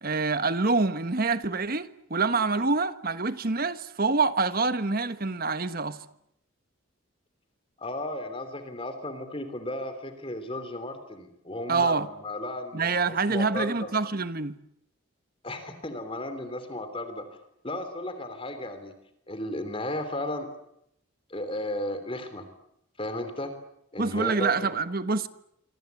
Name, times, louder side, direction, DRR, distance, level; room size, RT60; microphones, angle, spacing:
voice 1, 0.0-6.0 11.7-12.1 12.7-14.6 24.0-25.3, right 4 dB, 45° right, 1.3 m, -26 dB
voice 2, 7.8-13.9 15.4-17.3 17.6-18.9 19.3-20.5 21.3-22.4 23.0-23.5 23.9-24.8, left 1 dB, 25° left, 3.3 m, -34 dB
26.5 x 26.0 x 8.4 m
head